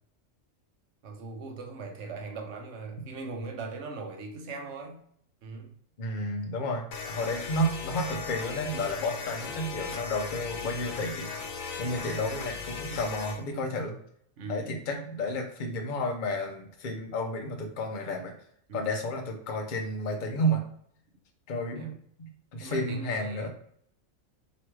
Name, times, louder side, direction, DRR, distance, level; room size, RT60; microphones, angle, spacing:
voice 1, 1.0-5.0 5.4-5.7 12.0-12.3 14.4-14.7 18.7-18.9 21.7-22.0 22.6-23.5, right 3 dB, 60° right, 1 dB, 1.1 m, -40 dB
voice 2, 6.0-13.9 14.5-18.3 18.7-20.6 21.5-21.9 22.5-23.5, left 1 dB, 45° left, 2 dB, 0.7 m, -31 dB
sound 1, 6.9-13.4, left 5 dB, 80° left, 1.2 m, -37 dB
3.1 x 3.0 x 4.6 m, 0.65 s
omnidirectional pair, 1.4 m